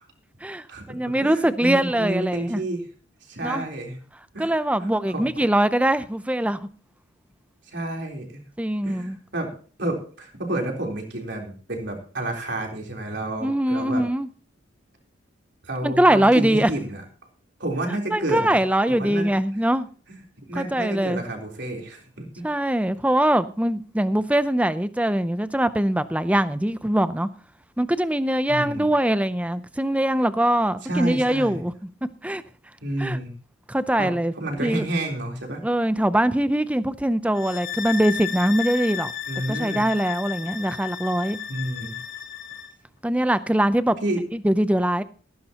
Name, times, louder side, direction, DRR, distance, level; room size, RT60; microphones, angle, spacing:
voice 1, 0.4-2.6 3.4-3.6 4.4-6.7 8.6-9.2 13.4-14.3 15.8-16.7 18.1-19.9 20.6-21.2 22.4-27.3 27.8-31.7 32.2-32.4 33.0-33.2 33.7-34.3 34.6-34.9 35.6-39.1 39.5-41.4 43.0-44.0 44.3-45.0, right 1 dB, 5° right, 0.6 m, -22 dB
voice 2, 1.2-2.8 3.3-4.0 4.3-4.5 4.8-5.3 7.7-8.4 8.9-9.5 9.8-14.1 15.6-17.0 17.6-18.5 18.9-19.3 20.1-20.2 20.5-22.4 28.5-28.9 30.8-31.6 32.8-33.3 34.0-35.6 39.3-39.8 41.5-42.0 44.0-44.2, right 1 dB, 60° right, 3.7 m, -30 dB
sound 1, 37.3-42.7, left 8 dB, 70° left, 3.4 m, -33 dB
16.0 x 14.5 x 2.9 m
head